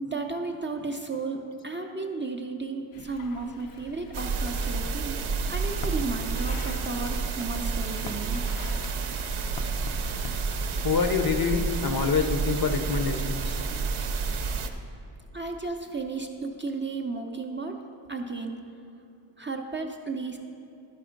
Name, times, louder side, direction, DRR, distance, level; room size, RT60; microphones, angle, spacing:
voice 1, 0.0-5.2 5.5-8.4 15.3-17.8 18.1-18.6 19.4-20.4, right 3 dB, 25° right, 2 dB, 0.4 m, -33 dB
sound 1, 2.9-10.4, left 4 dB, 90° left, 0.7 m, -44 dB
sound 2, 4.1-14.7, right 4 dB, 75° right, 0.7 m, -30 dB
voice 2, 10.8-13.6, left 5 dB, 50° left, 7 dB, 0.6 m, -26 dB
12.5 x 4.3 x 5.0 m, 2.6 s
wide cardioid pair, 115°, 49 cm